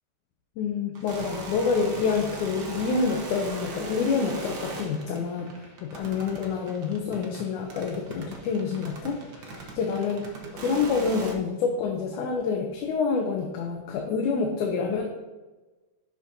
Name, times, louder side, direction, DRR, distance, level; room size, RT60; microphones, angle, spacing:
voice 1, 0.6-15.0, left 5 dB, 85° left, 2 dB, 2.2 m, -27 dB
sound 1, 1.0-11.3, right 2 dB, 85° right, 0.9 m, -39 dB
11.0 x 6.4 x 2.7 m, 1.2 s
omnidirectional pair, 3.4 m